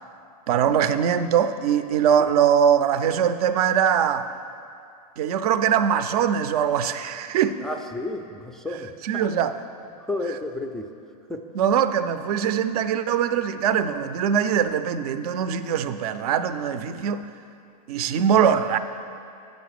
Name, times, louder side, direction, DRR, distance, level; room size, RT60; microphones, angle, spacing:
voice 1, 0.5-4.3 5.2-7.6 9.0-9.6 11.5-17.3 17.9-18.8, right 8 dB, 65° right, 12 dB, 0.5 m, -22 dB
voice 2, 7.6-9.3 9.9-10.9 11.3-11.5, left 2 dB, ahead, 4 dB, 0.3 m, -32 dB
8.5 x 5.2 x 6.6 m, 2.4 s
hypercardioid pair, 130°, 21 cm